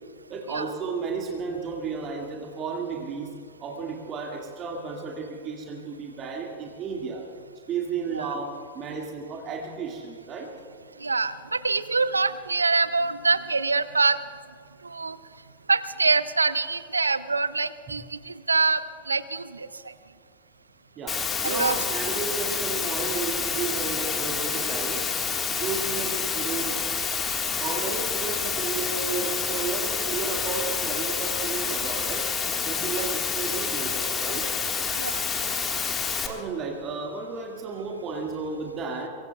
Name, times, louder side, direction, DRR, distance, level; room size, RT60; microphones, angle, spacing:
voice 1, 0.3-3.3 3.6-7.2 7.7-10.5 21.0-25.0 25.6-26.8 27.6-32.2 32.7-34.5 36.2-39.1, right 5 dB, 30° right, 0 dB, 1.9 m, -33 dB
voice 2, 11.0-14.2 14.8-15.2 15.7-18.8 19.1-19.7 21.4-21.8 33.0-33.1 35.0-35.2, right 3 dB, 80° right, 16 dB, 0.6 m, -25 dB
Water, 21.1-36.3, left 6 dB, 20° left, 1.6 m, -28 dB
24.5 x 23.0 x 2.3 m, 2.3 s
figure-of-eight pair, 90°, 0 cm